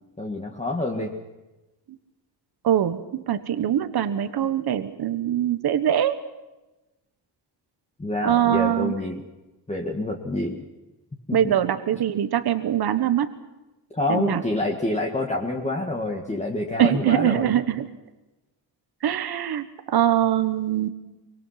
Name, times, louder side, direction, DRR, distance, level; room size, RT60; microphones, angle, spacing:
voice 1, 0.2-1.1 8.0-9.2 9.7-10.6 11.3-11.5 13.9-17.5, left 2 dB, 15° left, 0 dB, 2.0 m, -27 dB
voice 2, 2.6-6.1 8.2-8.9 11.3-13.3 14.1-14.4 16.8-17.9 19.0-20.9, right 10 dB, 60° right, 10 dB, 1.3 m, -23 dB
25.0 x 22.5 x 5.8 m, 1.0 s
cardioid pair, 130°, 43 cm